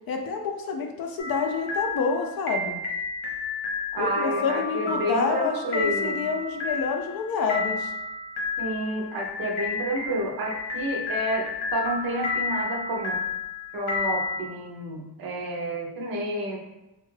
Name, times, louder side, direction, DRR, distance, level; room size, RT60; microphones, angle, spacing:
voice 1, 0.1-2.8 4.0-7.9, left 5 dB, 65° left, 3 dB, 0.5 m, -28 dB
sound 1, 1.2-14.4, left 4 dB, 85° left, 1.0 m, -31 dB
voice 2, 3.9-6.3 8.6-13.2 13.7-16.6, right 1 dB, 65° right, 2 dB, 0.6 m, -30 dB
3.4 x 2.2 x 3.2 m, 0.97 s
wide cardioid pair, 175°, 39 cm